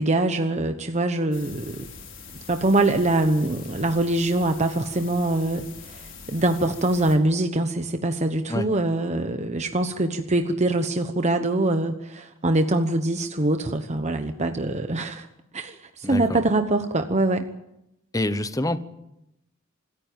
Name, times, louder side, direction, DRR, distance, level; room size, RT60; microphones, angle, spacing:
voice 1, 0.0-1.9 2.5-15.3 15.5-17.5, right 2 dB, 35° right, 7 dB, 1.1 m, -24 dB
sound 1, 1.3-7.2, left 5 dB, 60° left, 5.1 m, -43 dB
voice 2, 16.0-16.4 18.1-18.8, left 1 dB, 15° left, 12 dB, 1.0 m, -26 dB
26.0 x 14.5 x 9.0 m, 0.86 s
head